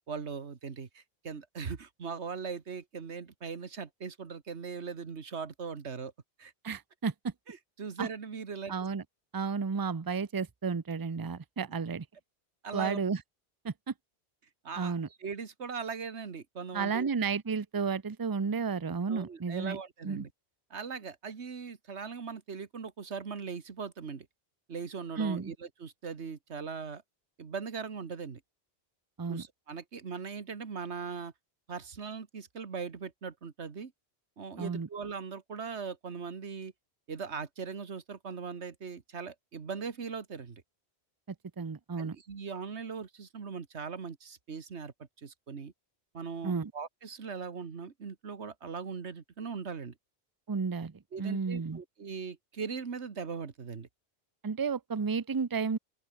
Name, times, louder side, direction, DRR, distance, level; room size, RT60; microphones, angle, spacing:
voice 1, 0.1-6.1 6.4-6.5 7.5-8.7 12.6-13.0 14.6-15.0 15.2-17.1 19.1-20.3 20.7-24.3 24.7-27.0 27.4-28.4 29.3-31.3 31.7-33.9 34.4-36.7 37.1-40.6 42.0-44.9 45.2-45.7 46.1-49.9 51.1-53.9, right 5 dB, 85° right, 1.9 m, -40 dB
voice 2, 6.6-7.3 8.0-8.1 8.7-9.0 9.3-12.1 12.7-13.2 13.6-13.9 14.8-15.1 16.7-19.8 20.0-20.2 25.2-25.5 29.2-29.4 34.6-34.9 41.6-42.2 46.4-46.7 50.5-50.9 51.2-51.8 54.4-55.8, right 5 dB, 25° right, 0.6 m, -32 dB
open air
omnidirectional pair, 1.1 m